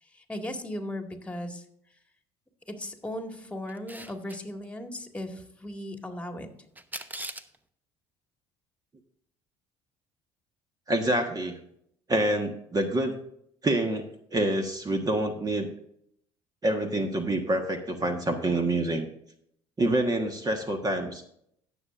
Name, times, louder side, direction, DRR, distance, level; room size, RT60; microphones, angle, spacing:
voice 1, 0.0-1.7 2.7-6.5, left 1 dB, 10° left, 4 dB, 1.9 m, -37 dB
Camera, 3.7-4.4 6.8-7.6, right 2 dB, 15° right, 0.8 m, -39 dB
voice 2, 10.9-11.6 12.1-13.1 13.6-14.1 14.3-15.7 16.6-19.1 19.8-21.3, right 1 dB, 30° right, 5 dB, 1.4 m, -27 dB
17.0 x 7.0 x 2.5 m, 0.71 s
hypercardioid pair, 70°, 13 cm